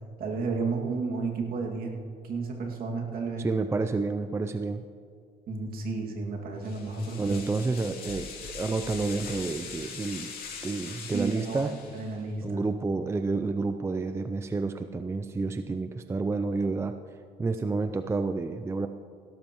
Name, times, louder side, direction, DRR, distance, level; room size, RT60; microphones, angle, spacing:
voice 1, 0.2-1.9 2.2-3.5 5.5-7.4 11.1-12.6, right 4 dB, 60° right, 0 dB, 2.1 m, -32 dB
voice 2, 3.4-4.9 7.2-10.3 10.6-11.8 12.4-17.0 17.4-18.9, right 3 dB, 15° right, 9 dB, 0.4 m, -29 dB
sound 1, 6.6-12.2, left 5 dB, 60° left, 2.6 m, -41 dB
16.5 x 13.0 x 3.0 m, 2.2 s
cardioid pair, 110°, 17 cm